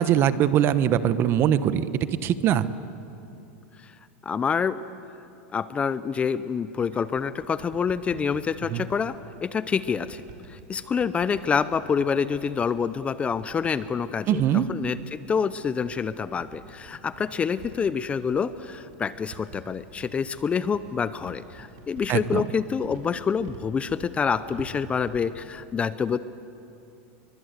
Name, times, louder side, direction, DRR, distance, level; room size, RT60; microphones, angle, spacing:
voice 1, 0.0-1.9 2.2-2.7 8.7-8.8 14.3-14.7 22.1-22.4, right 10 dB, 35° right, 14 dB, 1.0 m, -22 dB
voice 2, 4.3-4.8 5.5-10.2 10.5-14.4 14.7-26.2, left 6 dB, 15° left, 14 dB, 0.6 m, -27 dB
sound 1, 6.6-25.5, right 5 dB, 55° right, 4.3 m, -49 dB
28.5 x 23.0 x 8.2 m, 2.7 s
supercardioid pair, 145°, 7 cm